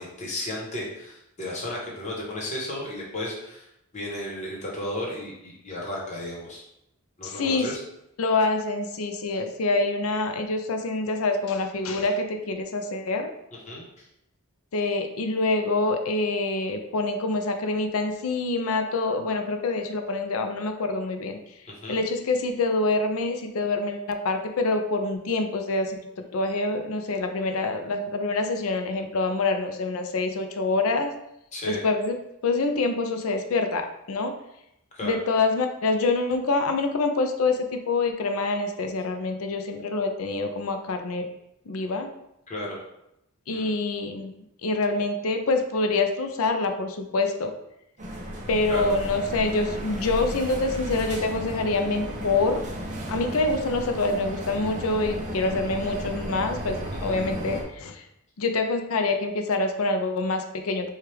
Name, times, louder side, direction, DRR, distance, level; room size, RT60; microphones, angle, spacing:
voice 1, 0.0-3.7 3.9-6.6 7.2-7.8 13.7-14.1 21.8-22.0 31.5-31.8 34.9-35.2 42.5-42.8 43.5-43.7 48.7-49.0 57.1-57.2, left 1 dB, 30° left, -3 dB, 1.0 m, -34 dB
voice 2, 7.2-7.8 8.2-13.3 14.7-21.4 21.9-26.0 26.3-31.1 31.7-32.1 32.4-34.4 35.0-41.3 41.7-42.1 43.5-44.3 44.6-47.5 48.5-52.6 53.1-58.0 58.4-60.9, left 3 dB, 65° left, 6 dB, 0.5 m, -26 dB
sound 1, 48.0-57.6, equal, 35° right, 0.7 m, -34 dB
4.4 x 2.4 x 3.3 m, 0.82 s
head